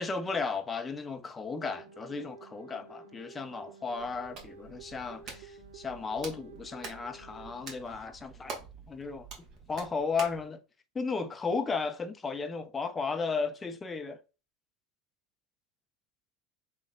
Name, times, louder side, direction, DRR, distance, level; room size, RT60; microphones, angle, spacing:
voice 1, 0.0-9.3 9.7-10.6 10.9-14.2, left 4 dB, 25° left, 0.6 m, -34 dB
sound 1, 1.6-8.2 10.0-10.1, right 5 dB, 80° right, 0.3 m, -52 dB
Hands, 4.0-10.5, right 4 dB, 45° right, 1.3 m, -47 dB
3.4 x 2.3 x 3.6 m
hypercardioid pair, 80°, 0 cm